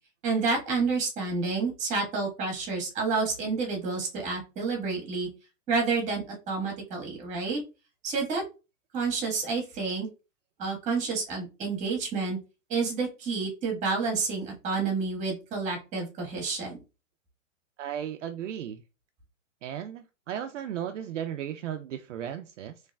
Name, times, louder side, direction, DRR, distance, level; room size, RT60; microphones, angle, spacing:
voice 1, 0.2-5.3 5.7-7.6 8.0-8.4 8.9-10.1 10.6-12.4 12.7-16.8, right 4 dB, 20° right, 1.4 m, -29 dB
voice 2, 17.8-18.8 19.6-22.8, right 10 dB, 65° right, 0.5 m, -35 dB
4.2 x 3.1 x 2.3 m
hypercardioid pair, 150°, 41 cm